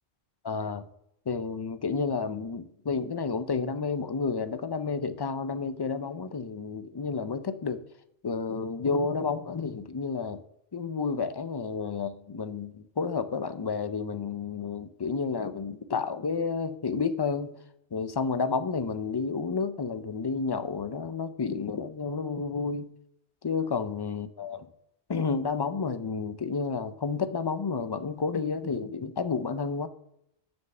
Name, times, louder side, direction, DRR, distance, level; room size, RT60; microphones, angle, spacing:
voice 1, 0.4-0.8 1.3-7.8 8.2-10.4 10.7-17.5 17.9-22.9 23.4-24.7 25.1-29.9, left 5 dB, 40° left, 11 dB, 0.3 m, -31 dB
7.1 x 6.5 x 6.5 m, 0.77 s
omnidirectional pair, 1.2 m